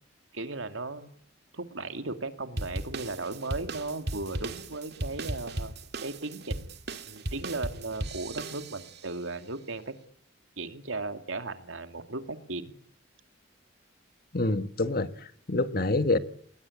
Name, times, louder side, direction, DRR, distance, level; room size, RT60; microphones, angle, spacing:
voice 1, 0.3-1.1 1.5-5.7 6.0-6.8 7.0-9.9 10.6-12.7, right 3 dB, 85° right, 2.6 m, -36 dB
sound 1, 2.6-9.1, right 2 dB, 55° right, 2.0 m, -37 dB
voice 2, 14.3-16.2, left 2 dB, 50° left, 1.6 m, -27 dB
29.5 x 20.5 x 8.6 m
head